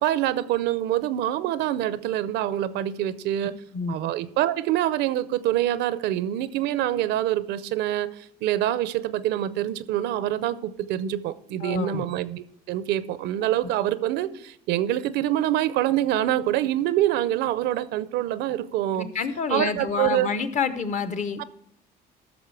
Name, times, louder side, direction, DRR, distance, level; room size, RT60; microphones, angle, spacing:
voice 1, 0.0-3.5 3.9-19.1 19.5-20.3 21.4-21.5, right 13 dB, 85° right, 16 dB, 0.6 m, -25 dB
voice 2, 11.6-12.0 19.0-21.4, left 5 dB, 45° left, 12 dB, 0.9 m, -28 dB
13.5 x 6.3 x 4.7 m, 0.75 s
cardioid pair, 110°, 17 cm